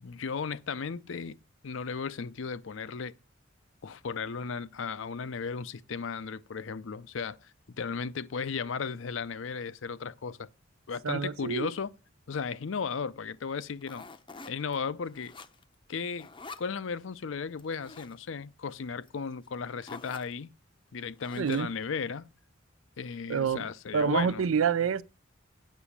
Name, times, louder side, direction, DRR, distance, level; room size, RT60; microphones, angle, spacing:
voice 1, 0.0-1.4 1.6-3.1 3.8-10.5 10.9-11.9 12.3-14.0 14.5-15.3 15.9-16.3 16.6-20.5 20.9-22.3 23.0-24.4, left 5 dB, 65° left, 0.5 m, -35 dB
voice 2, 11.0-11.7 21.4-21.7 23.3-23.7 23.9-25.0, right 6 dB, 80° right, 0.5 m, -27 dB
sound 1, 13.8-14.8 15.0-15.7 16.1-16.7 17.6-18.1 19.1-19.2 19.4-19.5 19.8-20.3 21.2-21.8, left 3 dB, 25° left, 0.6 m, -47 dB
8.3 x 6.1 x 7.1 m
head